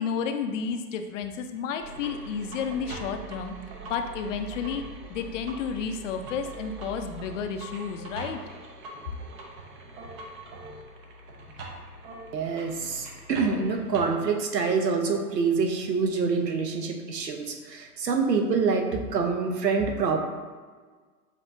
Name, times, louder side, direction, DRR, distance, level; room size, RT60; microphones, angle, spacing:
voice 1, 0.0-3.6 3.8-4.8 5.1-8.4, left 6 dB, 50° left, 7 dB, 0.5 m, -31 dB
sound 1, 1.8-14.1, right 2 dB, 25° right, 0.5 m, -42 dB
voice 2, 12.3-20.2, right 5 dB, 85° right, 4 dB, 0.9 m, -26 dB
7.2 x 2.7 x 2.6 m, 1.5 s
hypercardioid pair, 110°, 48 cm